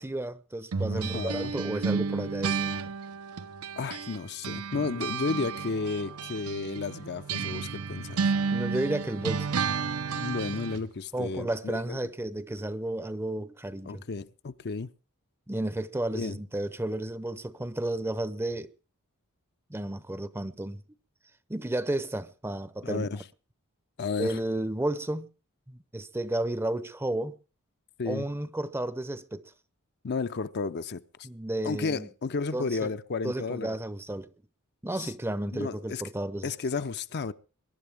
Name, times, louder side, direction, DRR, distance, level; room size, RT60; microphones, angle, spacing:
voice 1, 0.0-2.9 8.5-9.6 11.1-14.0 15.5-18.7 19.7-20.8 21.5-23.1 24.2-25.3 25.7-27.4 28.1-29.5 31.2-32.1 32.5-32.9 33.2-34.3 34.8-36.5, right 1 dB, 10° right, 0.7 m, -32 dB
sound 1, 0.7-4.2 4.4-10.8, right 5 dB, 80° right, 0.8 m, -32 dB
voice 2, 0.9-1.5 3.8-8.3 10.1-12.0 13.9-14.9 16.1-16.4 22.8-23.2 24.0-24.4 28.0-28.3 30.0-31.3 31.6-33.8 35.0-35.1 35.5-36.0 36.4-37.3, left 4 dB, 50° left, 0.6 m, -33 dB
22.0 x 11.5 x 3.5 m
head